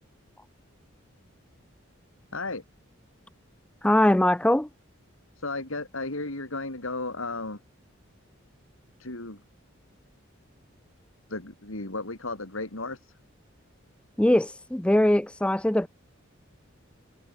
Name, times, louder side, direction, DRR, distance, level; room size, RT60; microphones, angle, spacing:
voice 1, 2.3-2.6 5.4-7.6 9.0-9.4 11.3-13.1, left 2 dB, 75° left, 3.4 m, -34 dB
voice 2, 3.8-4.7 14.2-15.9, left 1 dB, 5° left, 0.3 m, -21 dB
head